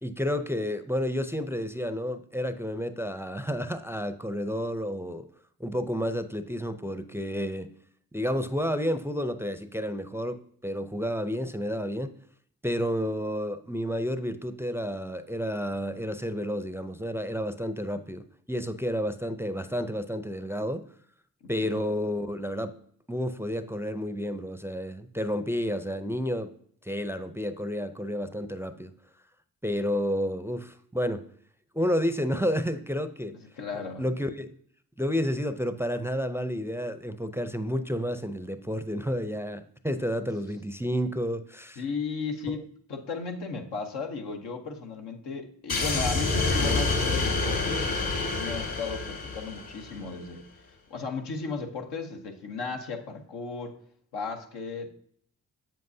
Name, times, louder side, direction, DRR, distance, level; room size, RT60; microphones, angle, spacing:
voice 1, 0.0-5.3 5.6-7.7 8.1-12.1 12.6-20.9 21.5-22.8 23.1-26.5 26.8-28.9 29.6-31.2 31.7-33.4 34.0-34.5 35.0-41.8 42.5-42.6, equal, 5° right, 0.5 m, -30 dB
voice 2, 21.4-21.8 33.3-34.1 41.8-50.4 50.9-53.8 54.1-54.9, left 4 dB, 80° left, 1.1 m, -35 dB
sound 1, 45.7-50.1, left 3 dB, 65° left, 2.0 m, -27 dB
7.6 x 7.4 x 2.7 m
supercardioid pair, 50°, 39 cm